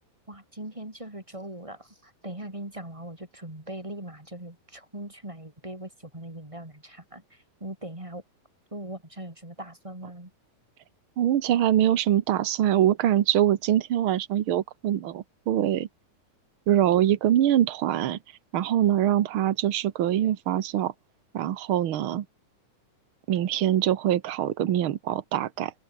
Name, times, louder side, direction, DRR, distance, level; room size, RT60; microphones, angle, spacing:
voice 1, 0.3-8.2 8.7-10.3, right 1 dB, 10° right, 3.4 m, -40 dB
voice 2, 11.2-15.9 16.7-18.2 18.5-20.9 21.3-22.2 23.3-25.7, right 11 dB, 70° right, 1.2 m, -24 dB
open air
omnidirectional pair, 4.0 m